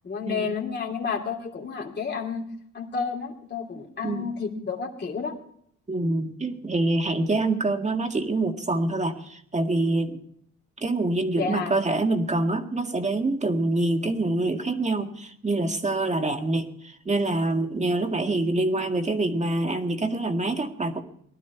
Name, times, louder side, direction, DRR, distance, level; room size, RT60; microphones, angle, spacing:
voice 1, 0.0-2.4 2.7-5.3 11.4-11.7, left 5 dB, 35° left, 0 dB, 2.8 m, -30 dB
voice 2, 5.9-10.2 10.8-21.0, right 2 dB, 25° right, 5 dB, 1.9 m, -26 dB
19.5 x 12.5 x 4.6 m, 0.67 s
cardioid pair, 90°, 30 cm